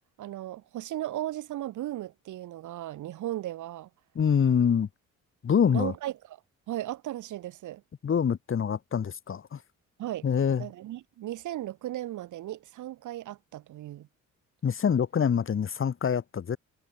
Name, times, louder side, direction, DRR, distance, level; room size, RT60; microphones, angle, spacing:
voice 1, 0.2-3.9 5.7-6.1 6.7-7.8 10.0-10.3 10.6-14.1, right 14 dB, 80° right, 2.0 m, -36 dB
voice 2, 4.2-4.9 5.4-5.9 8.0-9.6 10.2-10.7 14.6-16.6, left 7 dB, 45° left, 1.8 m, -25 dB
cardioid pair, 90°, 30 cm